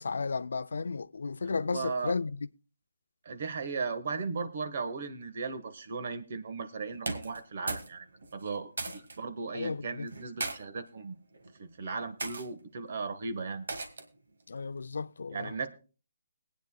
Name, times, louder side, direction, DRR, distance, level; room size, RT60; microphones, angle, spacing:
voice 1, 0.0-2.5 9.5-10.1 14.5-15.5, left 4 dB, 75° left, 0.4 m, -34 dB
voice 2, 1.4-2.1 3.2-8.1 8.3-11.1 11.6-13.6 15.3-15.7, right 4 dB, 55° right, 1.4 m, -36 dB
sound 1, 7.0-7.9 8.2-9.2 10.1-10.6 11.3-11.6 12.2-12.5 13.7-14.2, right 3 dB, 75° right, 1.8 m, -37 dB
22.0 x 9.2 x 2.3 m
hypercardioid pair, 155°, 0 cm